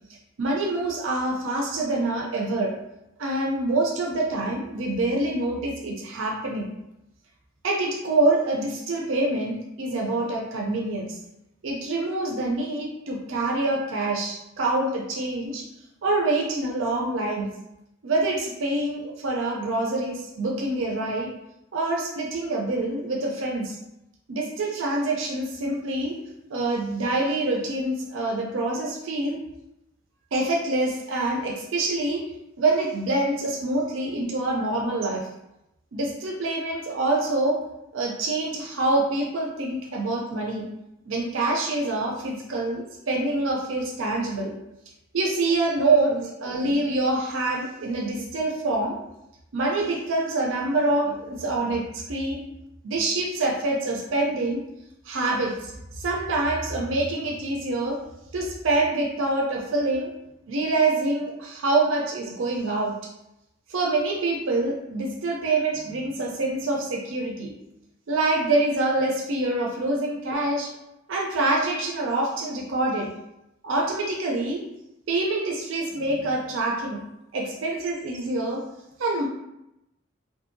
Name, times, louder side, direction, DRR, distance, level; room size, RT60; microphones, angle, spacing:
voice 1, 0.4-2.7 3.2-6.7 7.6-11.2 11.6-15.7 16.0-17.5 18.0-21.3 21.7-23.8 24.3-26.2 26.5-29.4 30.3-32.2 32.6-35.2 35.9-37.6 37.9-40.7 41.1-44.5 45.1-49.0 49.5-52.4 52.8-54.6 55.1-58.0 58.3-60.1 60.5-62.9 63.7-67.5 68.1-70.7 71.1-73.1 73.6-74.6 75.1-77.0 77.3-78.6 79.0-79.3, right 2 dB, 80° right, -1 dB, 0.5 m, -26 dB
2.7 x 2.6 x 2.5 m, 0.88 s
head